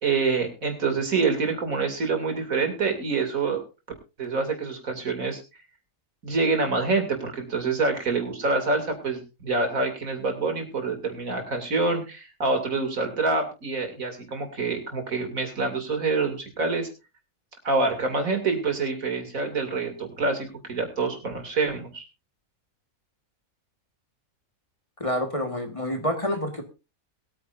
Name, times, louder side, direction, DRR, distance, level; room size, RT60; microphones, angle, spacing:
voice 1, 0.0-3.6 4.2-5.4 6.2-16.9 17.6-22.0, right 3 dB, 75° right, 5 dB, 3.2 m, -26 dB
voice 2, 25.0-26.6, equal, 25° left, 4 dB, 1.7 m, -28 dB
22.0 x 9.3 x 2.6 m, 0.28 s
omnidirectional pair, 1.5 m